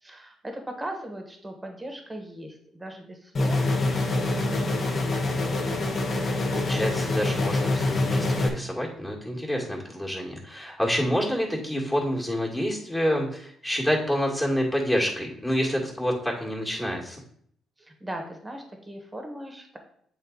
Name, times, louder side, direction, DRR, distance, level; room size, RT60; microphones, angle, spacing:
voice 1, 0.0-5.2 17.8-19.8, right 1 dB, 15° right, 3 dB, 1.5 m, -39 dB
sound 1, 3.3-8.5, left 2 dB, 45° left, 1.1 m, -25 dB
voice 2, 6.5-17.2, equal, 10° left, -1 dB, 1.8 m, -28 dB
8.1 x 3.9 x 3.9 m, 0.66 s
cardioid pair, 90°, 0 cm